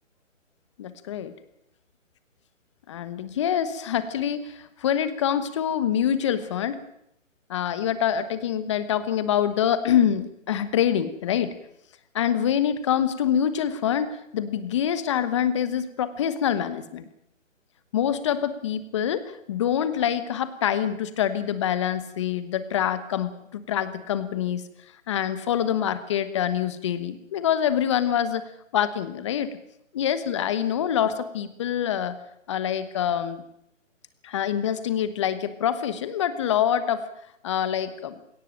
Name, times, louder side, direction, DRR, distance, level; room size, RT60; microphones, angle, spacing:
voice 1, 0.8-1.3 2.9-6.8 7.5-11.5 12.1-17.0 17.9-24.6 25.1-28.5 28.7-29.6 29.9-32.2 32.5-33.4 34.2-37.0 37.4-38.2, left 9 dB, 25° left, 13 dB, 1.2 m, -25 dB
19.0 x 18.0 x 8.9 m, 0.77 s
hypercardioid pair, 155°, 39 cm